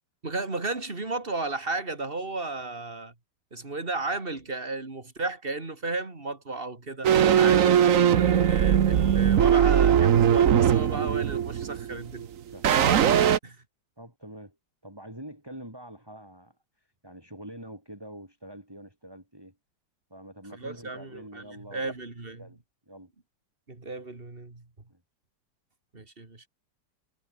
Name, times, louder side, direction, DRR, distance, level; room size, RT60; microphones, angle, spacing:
voice 1, 0.2-3.1 3.5-12.3 13.4-13.6 20.5-21.4 21.7-22.4 23.7-24.6 25.9-26.5, right 3 dB, 30° right, 3.2 m, -34 dB
sound 1, 7.0-12.3 12.6-13.4, right 9 dB, 55° right, 1.2 m, -20 dB
voice 2, 14.0-14.6 14.8-19.6 20.1-22.0 22.4-22.6 22.9-23.1 24.9-25.0, right 1 dB, 10° right, 7.2 m, -45 dB
omnidirectional pair, 1.9 m